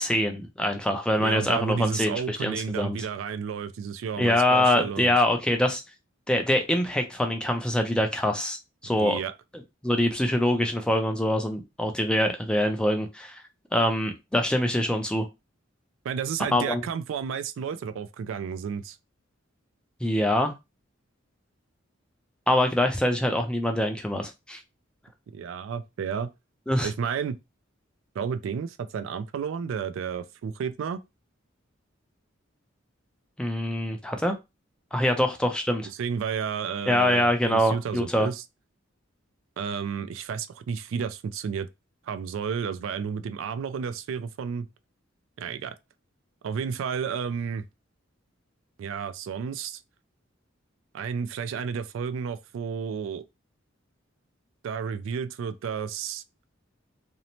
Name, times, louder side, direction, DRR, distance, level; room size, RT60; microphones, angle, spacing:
voice 1, 0.0-3.0 4.2-5.8 6.3-9.2 9.8-13.4 13.7-15.3 16.5-16.8 20.0-20.5 22.5-24.6 26.7-26.9 33.4-34.3 34.9-35.9 36.9-38.3, left 1 dB, 5° left, 0.4 m, -24 dB
voice 2, 1.2-5.1 9.0-9.3 16.0-19.0 25.3-26.3 26.8-27.4 28.2-31.0 36.0-38.4 39.6-41.7 42.1-44.7 45.4-45.8 46.4-47.6 48.8-49.8 50.9-53.2 54.6-56.2, right 6 dB, 70° right, 0.3 m, -31 dB
2.6 x 2.0 x 2.8 m
head